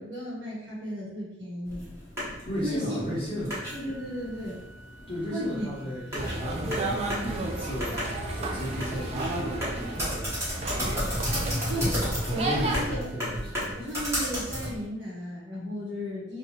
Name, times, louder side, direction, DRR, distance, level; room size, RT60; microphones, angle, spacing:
voice 1, 0.0-1.8 2.6-3.2 3.7-4.6 5.3-5.7 11.7-12.0 12.3-13.0 13.8-16.4, equal, 65° right, -10 dB, 1.0 m, -34 dB
sound 1, 1.7-14.8, equal, 15° right, 1.0 m, -33 dB
voice 2, 2.5-3.6 5.1-7.9 8.3-10.7 12.2-13.8, equal, 30° left, -8 dB, 0.9 m, -35 dB
Organ, 3.6-14.6, right 2 dB, 85° left, 0.5 m, -52 dB
sound 2, 6.1-12.9, right 2 dB, 35° right, 0.3 m, -32 dB
2.6 x 2.3 x 2.9 m, 0.88 s
head